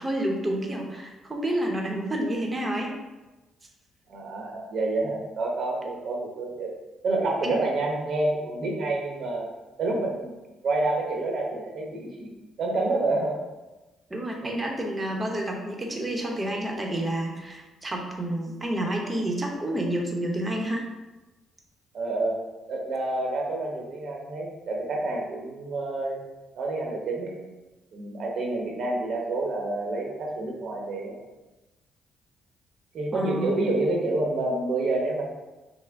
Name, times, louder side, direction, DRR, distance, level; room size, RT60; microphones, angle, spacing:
voice 1, 0.0-2.9 7.4-7.7 14.1-20.8 33.1-33.5, right 1 dB, 20° right, 1 dB, 0.9 m, -29 dB
voice 2, 4.1-6.7 7.0-9.5 9.8-10.3 10.6-12.3 12.6-13.4 14.4-14.7 21.9-26.2 26.6-27.4 27.9-31.2 32.9-35.2, right 2 dB, 65° right, 0 dB, 0.9 m, -28 dB
5.5 x 2.1 x 3.6 m, 1.1 s
cardioid pair, 90°, 0 cm